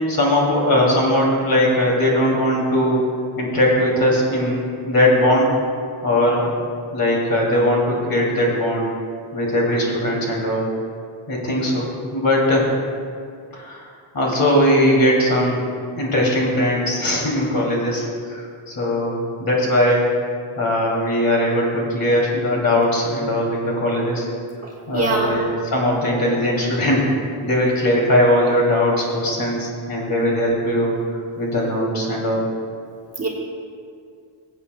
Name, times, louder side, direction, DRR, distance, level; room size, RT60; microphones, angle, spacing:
voice 1, 0.0-3.1 3.4-5.5 6.0-6.5 6.9-8.9 9.3-10.7 11.3-12.7 13.5-13.9 14.1-15.7 15.9-20.1 20.6-24.3 24.9-27.1 27.4-30.9 31.4-32.5, left 1 dB, 45° left, -2 dB, 2.6 m, -19 dB
voice 2, 24.6-25.4 33.2-33.3, right 3 dB, 30° right, -3 dB, 1.5 m, -23 dB
20.5 x 8.2 x 2.2 m, 2.2 s
cardioid pair, 125°, 49 cm